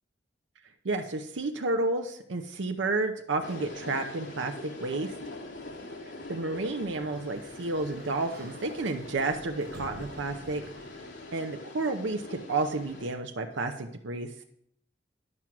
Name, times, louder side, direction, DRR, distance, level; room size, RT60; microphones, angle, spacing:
voice 1, 0.8-5.1 6.3-10.6 11.3-14.4, right 2 dB, 80° right, 4 dB, 0.7 m, -31 dB
sound 1, 3.4-13.1, left 2 dB, 85° left, 1.8 m, -43 dB
Sliding door, 6.5-11.4, right 1 dB, 55° right, 1.2 m, -50 dB
11.0 x 6.1 x 6.0 m, 0.70 s
head